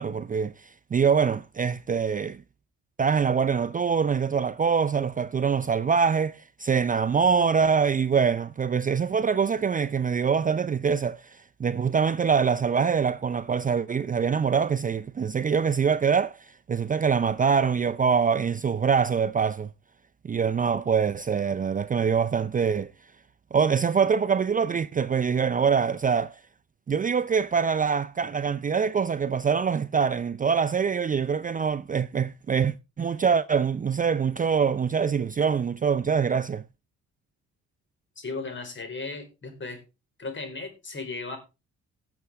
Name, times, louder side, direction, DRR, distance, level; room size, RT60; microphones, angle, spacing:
voice 1, 0.0-2.4 3.0-16.4 16.7-19.7 20.2-22.9 23.5-26.4 26.9-36.6, right 6 dB, 25° right, 0.5 m, -24 dB
voice 2, 38.2-39.8 40.2-41.4, left 3 dB, 40° left, 4.7 m, -36 dB
18.0 x 7.0 x 3.5 m
cardioid pair, 90°, 30 cm